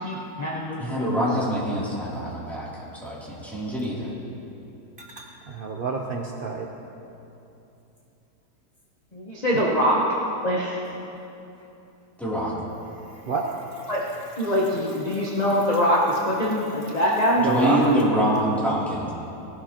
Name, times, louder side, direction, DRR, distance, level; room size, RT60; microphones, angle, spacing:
voice 1, 0.0-1.2 9.1-10.1 10.4-10.8 13.9-14.1 14.4-17.5, equal, 30° left, -4 dB, 1.0 m, -23 dB
voice 2, 0.8-4.1 12.2-12.5 17.4-19.1, equal, ahead, -9 dB, 2.8 m, -25 dB
voice 3, 5.6-6.7 13.3-13.4 17.4-17.8, right 4 dB, 70° right, 1 dB, 0.5 m, -28 dB
18.0 x 11.5 x 2.9 m, 2.9 s
omnidirectional pair, 1.8 m